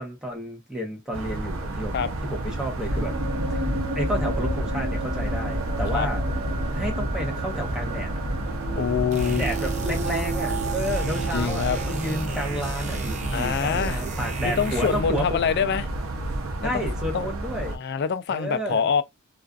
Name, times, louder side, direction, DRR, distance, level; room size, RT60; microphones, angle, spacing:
voice 1, 0.0-3.1 3.9-6.2 6.7-8.1 9.3-15.4 16.6-17.8 18.3-18.8, equal, 5° right, 0.8 m, -31 dB
sound 1, 1.1-17.8, right 1 dB, 90° right, 0.6 m, -31 dB
sound 2, 2.9-12.7, right 1 dB, 70° right, 1.0 m, -30 dB
voice 2, 8.7-9.5 11.3-11.8 13.3-14.0 14.4-15.9 16.6-16.8 17.1-17.3 17.7-19.0, left 7 dB, 55° left, 0.3 m, -25 dB
sound 3, 9.1-15.2, right 3 dB, 35° right, 0.5 m, -34 dB
2.4 x 2.4 x 2.2 m
head